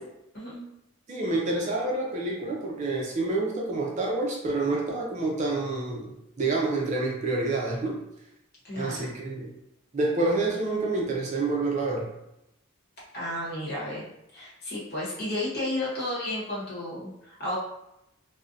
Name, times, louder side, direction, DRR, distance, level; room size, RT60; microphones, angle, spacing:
voice 1, 0.3-0.7 8.6-9.1 13.1-17.6, left 1 dB, 50° left, -7 dB, 1.0 m, -33 dB
voice 2, 1.1-6.1 6.4-8.0 8.7-9.5 9.9-12.1, right 2 dB, 35° right, -2 dB, 0.4 m, -28 dB
2.5 x 2.0 x 2.5 m, 0.84 s
head